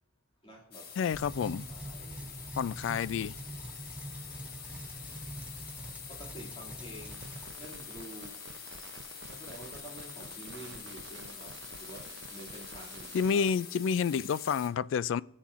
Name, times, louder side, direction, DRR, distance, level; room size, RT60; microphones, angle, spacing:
voice 1, 0.4-1.0 1.4-2.4 6.1-7.3 7.6-8.4 9.3-13.6, right 1 dB, 25° left, 2.3 m, -49 dB
sound 1, 0.7-14.7, left 7 dB, 50° left, 1.2 m, -46 dB
voice 2, 1.0-1.6 2.6-3.3 13.1-15.2, left 6 dB, 80° left, 0.3 m, -29 dB
sound 2, 1.1-7.5, right 1 dB, 5° right, 0.5 m, -44 dB
sound 3, 6.7-13.5, right 6 dB, 60° right, 0.5 m, -51 dB
20.5 x 7.2 x 2.5 m
head